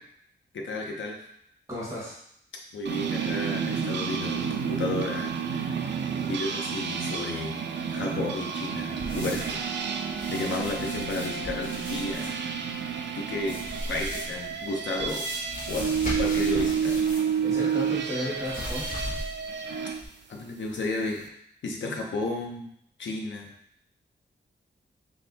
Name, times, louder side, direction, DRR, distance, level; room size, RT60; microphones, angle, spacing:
voice 1, 0.5-1.2 2.7-6.0 6.2-7.6 7.9-9.6 10.3-12.4 13.1-15.3 15.7-17.1 20.3-21.3 21.6-22.7 23.0-23.6, left 2 dB, 85° left, 1 dB, 0.9 m, -33 dB
voice 2, 1.7-2.2 17.4-18.9, equal, 15° right, -8 dB, 1.9 m, -33 dB
sound 1, 2.8-20.0, right 7 dB, 70° right, 0.4 m, -30 dB
sound 2, 9.0-9.6 10.1-12.3 13.4-14.4 15.0-17.4 17.6-17.7 18.4-19.5 20.0-20.1, left 1 dB, 45° left, 1.8 m, -37 dB
3.9 x 3.2 x 4.1 m, 0.70 s
wide cardioid pair, 130°, 19 cm